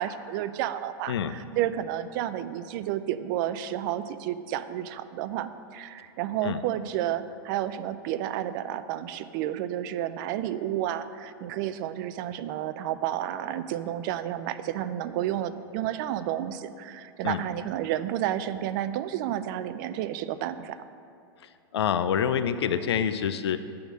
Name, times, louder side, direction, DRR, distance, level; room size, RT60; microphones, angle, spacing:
voice 1, 0.0-20.8, right 11 dB, 50° right, 13 dB, 0.4 m, -31 dB
voice 2, 21.7-23.6, left 8 dB, 90° left, 11 dB, 0.4 m, -26 dB
7.7 x 3.5 x 6.1 m, 2.4 s
hypercardioid pair, 120°, 13 cm